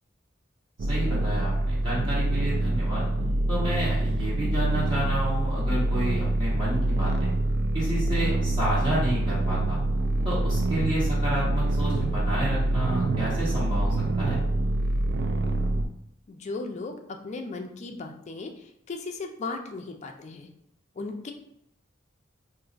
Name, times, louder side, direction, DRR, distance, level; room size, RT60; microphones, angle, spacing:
sound 1, 0.8-15.9, right 2 dB, 60° right, 0.3 m, -25 dB
voice 1, 0.9-3.0 3.5-7.3 7.7-9.8 10.2-14.4, right 1 dB, 25° right, -8 dB, 1.1 m, -30 dB
voice 2, 16.3-20.5 20.9-21.3, left 3 dB, 40° left, 4 dB, 0.4 m, -36 dB
2.5 x 2.4 x 3.9 m, 0.73 s
head